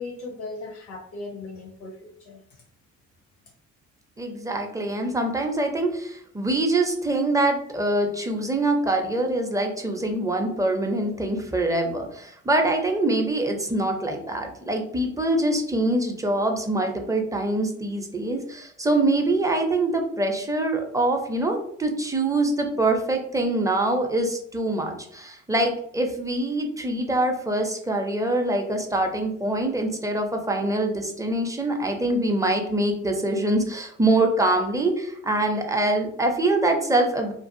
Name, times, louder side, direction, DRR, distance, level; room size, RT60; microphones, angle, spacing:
voice 1, 0.0-2.4, left 3 dB, 75° left, 1 dB, 0.7 m, -37 dB
voice 2, 4.2-37.3, right 2 dB, 10° right, 3 dB, 0.5 m, -24 dB
2.5 x 2.3 x 2.6 m, 0.68 s
supercardioid pair, 70°, 30 cm